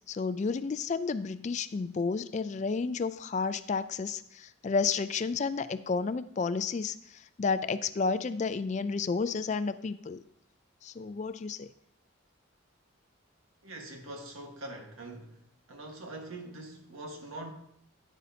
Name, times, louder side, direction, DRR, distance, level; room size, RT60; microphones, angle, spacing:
voice 1, 0.1-10.2 10.8-11.7, left 4 dB, 35° left, 0.3 m, -31 dB
voice 2, 13.6-15.4 15.7-17.5, right 2 dB, 85° right, 1.6 m, -43 dB
10.0 x 8.3 x 2.8 m
head